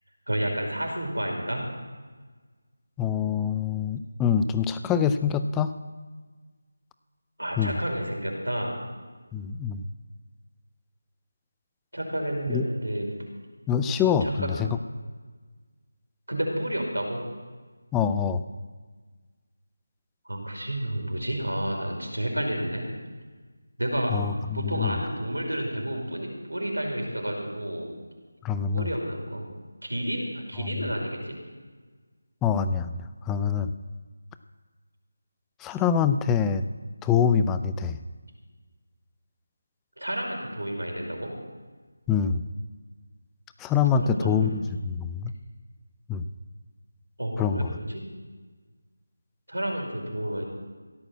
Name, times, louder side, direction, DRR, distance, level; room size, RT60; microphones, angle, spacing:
voice 1, 0.3-1.6 7.4-8.7 11.9-13.1 14.2-14.5 16.3-17.2 20.2-22.8 23.8-24.2 24.5-27.9 28.7-29.5 29.9-31.3 40.0-41.3 43.9-44.6 47.2-48.0 49.5-50.4, right 1 dB, 90° right, 1 dB, 5.1 m, -30 dB
voice 2, 3.0-5.8 7.6-7.7 9.3-9.8 12.5-12.6 13.7-14.8 17.9-18.4 24.1-24.9 28.4-28.9 30.6-30.9 32.4-33.7 35.6-36.6 37.0-38.0 42.1-42.4 43.6-44.6 44.8-45.3 46.1-46.2 47.4-47.8, left 7 dB, 10° left, 11 dB, 0.4 m, -25 dB
16.0 x 8.9 x 7.7 m, 1.4 s
figure-of-eight pair, 165°, 0 cm